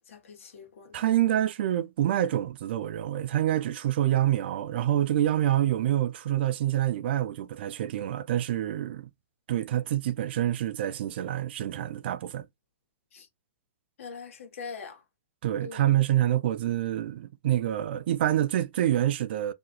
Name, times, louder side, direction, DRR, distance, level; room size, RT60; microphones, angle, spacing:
voice 1, 0.0-1.0 13.1-13.3 14.0-15.0 15.6-16.0, left 5 dB, 75° left, 1.4 m, -43 dB
voice 2, 0.9-9.1 9.5-12.5 15.4-19.5, right 12 dB, 50° right, 0.4 m, -27 dB
2.9 x 2.4 x 3.7 m
hypercardioid pair, 165°, 7 cm